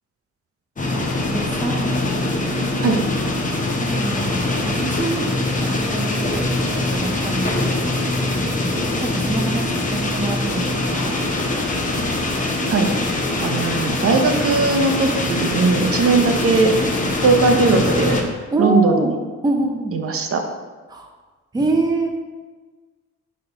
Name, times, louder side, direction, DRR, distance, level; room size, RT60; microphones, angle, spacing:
sound 1, 0.8-18.2, left 2 dB, 25° left, 0.9 m, -23 dB
voice 1, 0.9-2.0 3.8-8.2 8.6-11.2 18.5-19.1 19.4-19.9 20.9-21.1 21.5-22.1, right 2 dB, 15° right, 2 dB, 0.6 m, -26 dB
voice 2, 13.4-16.7 17.2-18.2 18.6-19.2 19.9-20.4, right 4 dB, 50° right, 4 dB, 0.8 m, -18 dB
4.2 x 4.2 x 5.3 m, 1.4 s
cardioid pair, 90°, 30 cm